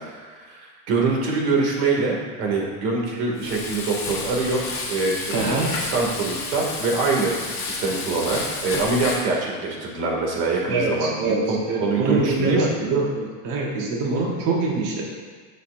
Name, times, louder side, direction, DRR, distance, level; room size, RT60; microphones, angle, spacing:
voice 1, 0.0-5.5 5.9-12.7, right 3 dB, 90° right, -1 dB, 2.4 m, -24 dB
Frying (food), 3.4-9.3, left 3 dB, 25° left, 1.5 m, -31 dB
voice 2, 5.3-5.7 10.7-15.0, right 3 dB, 40° right, -2 dB, 1.3 m, -24 dB
14.5 x 6.5 x 2.6 m, 1.5 s
cardioid pair, 175°, 46 cm